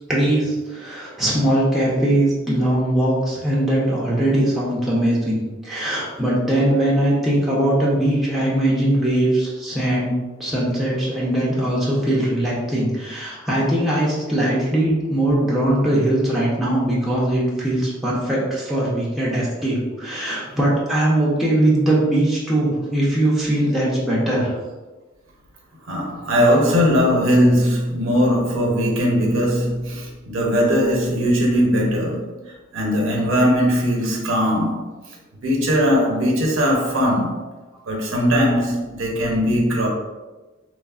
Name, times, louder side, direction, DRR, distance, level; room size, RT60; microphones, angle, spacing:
voice 1, 0.1-10.1 10.4-24.6, right 1 dB, ahead, 0.5 m, -20 dB
voice 2, 25.9-32.4 32.7-34.9 35.4-37.4 37.9-39.9, equal, 80° right, 0.7 m, -19 dB
3.1 x 2.0 x 2.3 m
head